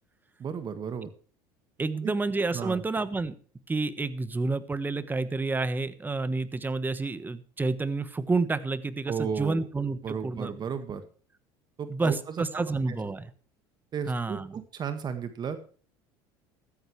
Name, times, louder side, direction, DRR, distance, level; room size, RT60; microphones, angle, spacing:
voice 1, 0.4-1.1 2.0-2.2 2.5-2.8 9.1-9.6 10.0-11.0 11.8-13.0 13.9-15.7, right 7 dB, 40° right, 9 dB, 1.8 m, -34 dB
voice 2, 1.8-3.4 3.7-10.5 11.9-13.3 14.1-14.5, right 3 dB, 15° right, 14 dB, 1.3 m, -29 dB
15.0 x 13.0 x 3.3 m, 0.42 s
supercardioid pair, 95°, 12 cm